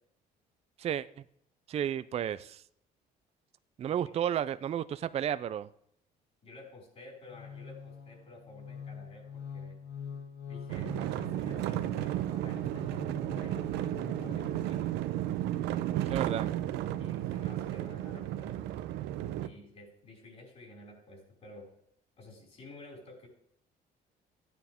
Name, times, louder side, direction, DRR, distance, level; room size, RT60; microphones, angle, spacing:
voice 1, 0.8-1.2 1.7-2.6 3.8-5.7 16.1-16.5, right 9 dB, 40° right, 14 dB, 0.4 m, -32 dB
voice 2, 6.4-9.8 10.5-15.0 15.9-16.5 17.0-18.6 19.4-21.7 22.2-23.3, left 1 dB, 40° left, -1 dB, 5.5 m, -52 dB
sound 1, 7.3-15.2, left 7 dB, 85° left, 1.5 m, -45 dB
sound 2, 10.7-19.5, right 13 dB, 90° right, 0.7 m, -33 dB
14.5 x 9.3 x 3.6 m, 0.70 s
cardioid pair, 110°, 17 cm